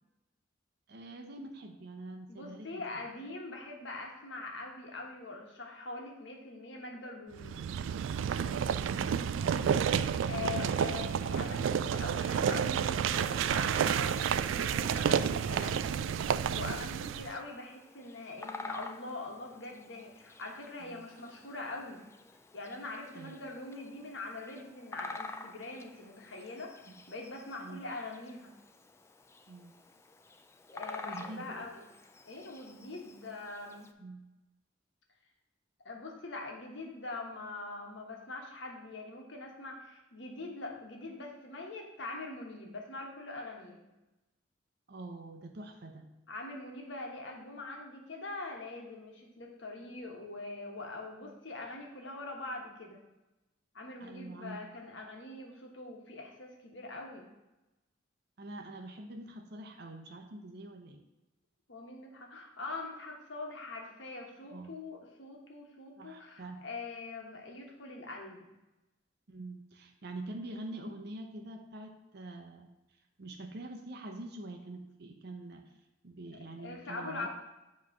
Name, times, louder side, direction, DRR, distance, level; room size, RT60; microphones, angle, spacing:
voice 1, 0.9-2.8 8.8-9.9 20.8-21.1 23.1-23.4 27.6-27.8 29.5-29.7 31.0-31.7 34.0-34.2 44.9-46.1 54.0-54.6 58.4-61.0 64.5-64.8 66.0-66.7 69.3-72.7 73.2-75.7 76.0-77.3, right 2 dB, 60° right, 4 dB, 0.7 m, -45 dB
voice 2, 2.3-7.5 10.3-22.0 22.5-26.7 27.1-28.5 30.7-31.8 32.2-33.9 35.8-43.8 46.3-53.0 53.7-57.3 61.7-68.5 76.6-77.3, left 2 dB, 70° left, 1 dB, 1.3 m, -43 dB
sound 1, 7.4-17.4, right 8 dB, 85° right, 0.3 m, -30 dB
Bird vocalization bird call bird song, 17.3-33.9, left 3 dB, 15° left, 0.3 m, -49 dB
7.4 x 3.2 x 5.9 m, 0.99 s
head